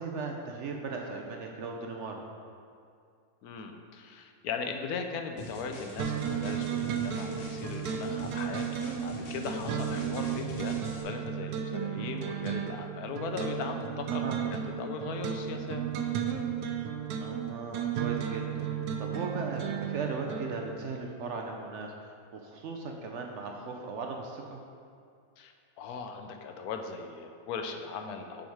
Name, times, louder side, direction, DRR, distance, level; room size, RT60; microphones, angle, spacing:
voice 1, 0.0-2.2 14.1-14.4 17.2-18.6 19.0-24.6, right 4 dB, 65° right, 1 dB, 0.8 m, -37 dB
voice 2, 3.4-15.8 25.4-28.5, left 5 dB, 80° left, 5 dB, 1.1 m, -39 dB
sound 1, 5.4-11.0, left 2 dB, 65° left, 1.4 m, -44 dB
sound 2, 6.0-20.8, right 8 dB, 85° right, 1.2 m, -34 dB
7.1 x 5.2 x 4.6 m, 2.4 s
omnidirectional pair, 1.6 m